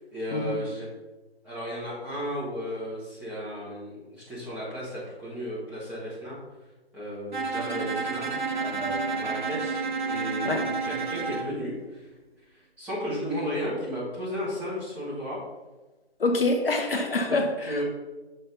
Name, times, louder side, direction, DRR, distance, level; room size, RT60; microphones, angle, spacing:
voice 1, 0.1-0.9 1.4-6.4 6.9-8.3 8.6-12.1 12.5-15.4 17.3-17.8, equal, 5° right, -11 dB, 1.4 m, -34 dB
Bowed string instrument, 7.3-11.5, right 4 dB, 45° right, 0.6 m, -30 dB
voice 2, 16.2-17.8, left 2 dB, 60° left, 3 dB, 0.8 m, -26 dB
6.7 x 4.1 x 4.0 m, 1.2 s
figure-of-eight pair, 145°, 33 cm